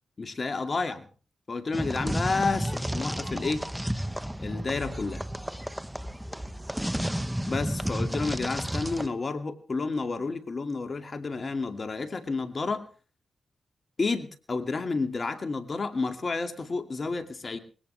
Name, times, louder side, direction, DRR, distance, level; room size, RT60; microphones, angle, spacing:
voice 1, 0.2-1.1 1.5-3.7 4.4-5.3 7.4-12.8 14.0-17.6, left 3 dB, 50° left, 7 dB, 2.4 m, -30 dB
sound 1, 1.7-9.1, equal, 5° right, 1.1 m, -32 dB
20.5 x 17.5 x 3.4 m, 0.36 s
supercardioid pair, 45°, 0 cm